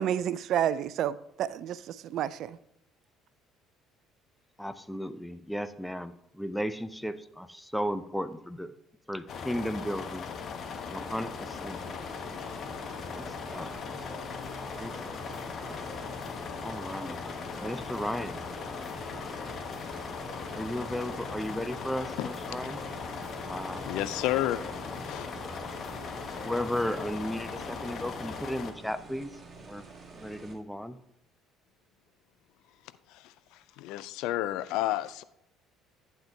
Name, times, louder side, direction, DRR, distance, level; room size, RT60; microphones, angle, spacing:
voice 1, 0.0-2.6, right 10 dB, 55° right, 0.3 m, -30 dB
voice 2, 4.6-8.7 9.1-10.3 10.9-11.8 13.1-13.7 14.7-15.0 15.6-15.8 16.6-17.2 17.6-18.4 20.5-22.8 23.4-24.0 26.3-29.4 29.7-29.9 30.1-31.0, equal, ahead, 0.5 m, -35 dB
sound 1, 9.3-28.7, left 5 dB, 45° left, 0.8 m, -39 dB
sound 2, 11.0-30.6, right 3 dB, 30° right, 1.6 m, -49 dB
sound 3, 13.1-27.1, equal, 15° left, 1.9 m, -48 dB
voice 3, 23.8-24.7 25.0-25.3 33.1-35.2, left 14 dB, 60° left, 0.3 m, -31 dB
11.5 x 9.2 x 2.3 m
figure-of-eight pair, 55°, 0 cm